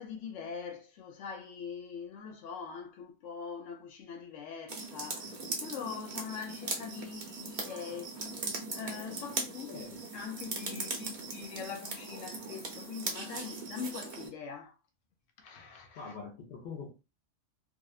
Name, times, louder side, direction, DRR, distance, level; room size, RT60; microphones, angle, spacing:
voice 1, 0.0-8.2 8.7-9.8 10.1-14.8 15.4-16.1, left 6 dB, 85° left, 1.0 m, -43 dB
sound 1, 4.7-14.3, right 3 dB, 50° right, 0.7 m, -39 dB
voice 2, 9.6-10.0 16.0-16.9, left 5 dB, 55° left, 0.6 m, -44 dB
2.8 x 2.1 x 2.3 m
omnidirectional pair, 1.3 m